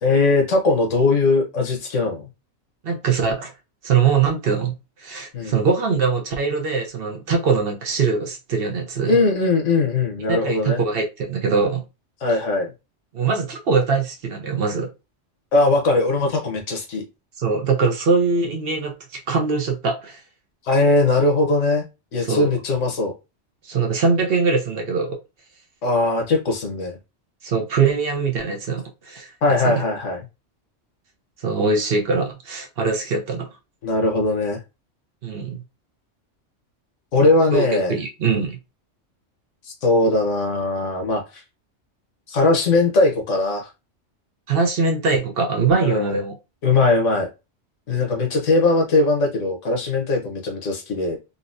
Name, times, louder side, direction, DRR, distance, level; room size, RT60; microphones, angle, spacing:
voice 1, 0.0-2.3 5.3-5.5 9.1-10.8 12.2-12.7 15.5-17.0 20.6-23.1 25.8-27.0 29.4-30.2 33.8-34.6 37.1-38.0 39.8-41.4 42.3-43.7 45.8-46.1 46.6-47.3 47.9-51.2, left 2 dB, 85° left, 1.3 m, -20 dB
voice 2, 2.8-3.5 3.8-4.7 5.0-9.2 10.3-11.8 13.1-14.9 17.4-20.2 22.2-22.5 23.6-25.2 27.4-29.3 29.6-29.8 31.4-33.5 35.2-35.6 37.5-38.6 44.5-46.3, right 4 dB, 60° right, 0.8 m, -22 dB
3.9 x 2.0 x 2.5 m
omnidirectional pair, 1.2 m